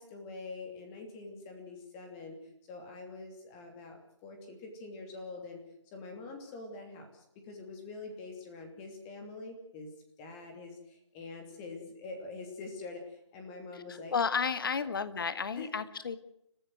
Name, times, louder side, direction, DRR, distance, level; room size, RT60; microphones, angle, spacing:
voice 1, 0.0-5.6 5.9-9.9 10.2-14.1 15.6-15.7, left 3 dB, 15° left, 3 dB, 2.9 m, -45 dB
voice 2, 13.9-16.2, left 6 dB, 45° left, 12 dB, 1.8 m, -32 dB
29.5 x 15.5 x 7.9 m, 0.78 s
figure-of-eight pair, 160°, 16 cm